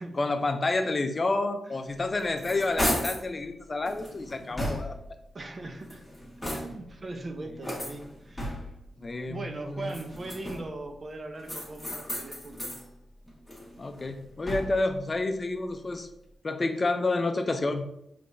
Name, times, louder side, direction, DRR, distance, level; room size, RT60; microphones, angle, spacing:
voice 1, 0.2-5.0 7.6-7.7 9.0-10.0 13.8-16.1 16.4-17.9, left 2 dB, 40° left, 8 dB, 0.5 m, -29 dB
sound 1, 2.0-3.3 3.9-5.1 5.7-7.0 7.6-8.9 9.8-10.8 11.4-12.8 13.3-14.9, equal, 10° left, 1.3 m, -35 dB
voice 2, 5.3-6.0 6.5-8.7 9.0-12.9, right 2 dB, 40° right, 4 dB, 0.6 m, -40 dB
5.0 x 3.3 x 2.6 m, 0.79 s
cardioid pair, 65°, 0 cm